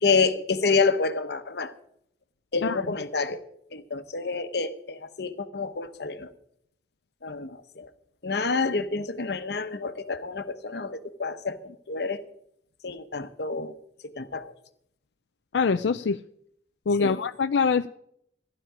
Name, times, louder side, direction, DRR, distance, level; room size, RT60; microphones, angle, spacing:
voice 1, 0.0-1.7 2.5-3.4 3.7-6.3 7.2-7.9 8.2-12.2 12.8-13.7 14.1-14.5 17.0-17.2, left 4 dB, 65° left, 10 dB, 1.1 m, -28 dB
voice 2, 15.5-16.2 16.9-17.9, left 5 dB, 90° left, 10 dB, 0.5 m, -24 dB
15.0 x 11.5 x 5.0 m, 0.72 s
head